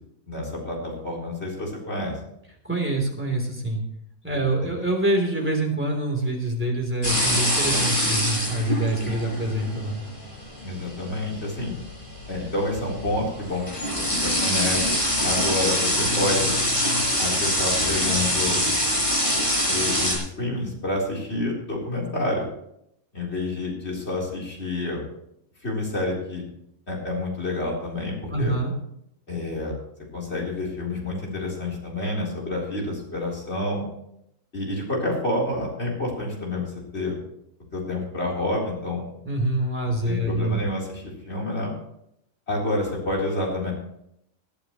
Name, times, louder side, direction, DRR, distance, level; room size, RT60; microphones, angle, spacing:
voice 1, 0.3-2.1 4.6-4.7 10.6-11.7 12.3-13.6 13.9-14.9 15.2-16.5 17.2-18.6 19.7-22.5 23.1-25.0 25.6-26.4 26.9-28.5 29.3-29.8 30.1-33.8 34.5-36.7 36.9-37.2 37.7-39.0 40.1-41.7 42.5-43.7, left 2 dB, 45° left, -2 dB, 4.3 m, -28 dB
voice 2, 2.6-3.8 4.2-10.0 28.3-28.7 39.2-40.6, right 1 dB, 10° right, 0 dB, 3.4 m, -25 dB
sound 1, 7.0-20.2, equal, 20° left, 6.5 m, -24 dB
20.5 x 11.5 x 3.1 m, 0.76 s
omnidirectional pair, 1.5 m